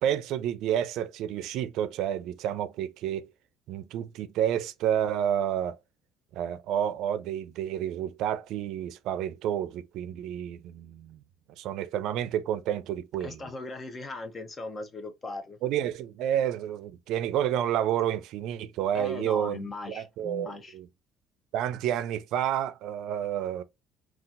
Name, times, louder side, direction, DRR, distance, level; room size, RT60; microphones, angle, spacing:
voice 1, 0.0-3.3 3.7-5.8 6.3-11.2 11.6-13.5 15.6-20.9 21.5-23.6, right 10 dB, 70° right, 0.4 m, -30 dB
voice 2, 13.2-15.6 18.9-20.7, left 3 dB, 30° left, 0.8 m, -38 dB
3.8 x 2.4 x 2.5 m
supercardioid pair, 90°, 0 cm